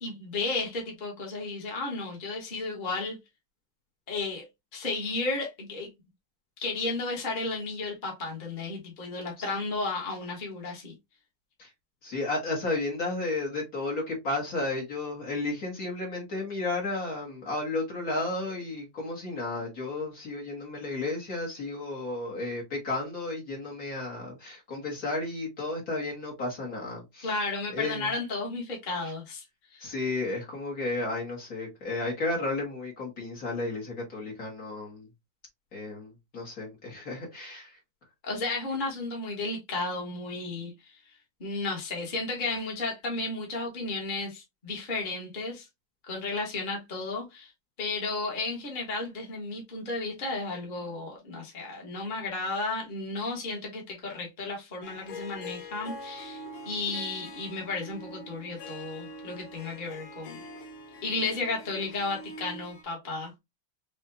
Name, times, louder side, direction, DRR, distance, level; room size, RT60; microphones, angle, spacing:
voice 1, 0.0-3.2 4.1-4.4 4.7-5.9 6.6-10.9 27.2-29.4 29.7-29.9 38.2-41.0 41.4-45.7 46.1-47.5 47.8-60.4 61.0-63.3, left 3 dB, 25° left, 1.4 m, -33 dB
voice 2, 12.0-27.3 27.7-28.1 29.8-35.1 35.7-37.8, left 2 dB, 45° left, 1.8 m, -33 dB
Harp, 54.8-62.8, left 1 dB, 90° left, 1.9 m, -44 dB
5.6 x 2.6 x 2.7 m
omnidirectional pair, 2.3 m